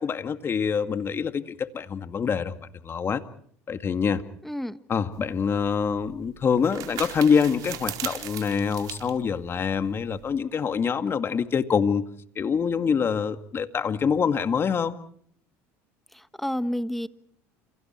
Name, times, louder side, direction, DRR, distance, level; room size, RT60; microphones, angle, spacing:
voice 1, 0.0-2.5 2.8-3.2 3.7-4.2 4.9-12.0 12.4-14.9, left 6 dB, 35° left, 9 dB, 2.1 m, -25 dB
voice 2, 4.4-4.8 16.1-17.1, equal, 5° left, 12 dB, 1.3 m, -30 dB
sound 1, 5.1-10.3, right 12 dB, 60° right, 4.1 m, -39 dB
29.5 x 28.5 x 4.6 m, 0.62 s
supercardioid pair, 95°, 7 cm